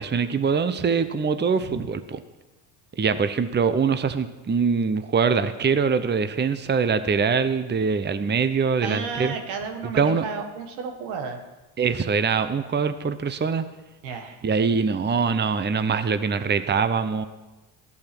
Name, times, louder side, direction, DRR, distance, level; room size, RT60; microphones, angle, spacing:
voice 1, 0.0-2.2 3.0-9.3 9.9-10.2 11.8-13.7 14.4-17.3, right 5 dB, 20° right, 11 dB, 0.9 m, -23 dB
voice 2, 8.8-11.4 14.0-14.4, right 5 dB, 85° right, 4 dB, 1.7 m, -32 dB
14.5 x 8.5 x 6.1 m, 1.1 s
hypercardioid pair, 65°, 48 cm